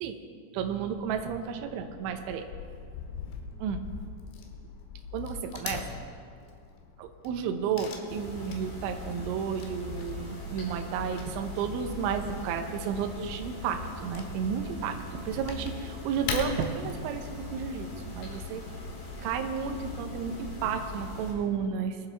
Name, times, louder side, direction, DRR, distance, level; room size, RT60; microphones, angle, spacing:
voice 1, 0.5-2.5 3.6-3.8 5.1-5.8 7.0-18.6 19.2-22.0, right 7 dB, 80° right, 5 dB, 3.3 m, -32 dB
Wood / Tearing, 1.0-20.6, left 5 dB, 80° left, 3.7 m, -43 dB
sound 1, 8.1-21.3, left 2 dB, 50° left, 5.5 m, -40 dB
21.5 x 12.0 x 3.4 m, 2.2 s
omnidirectional pair, 5.5 m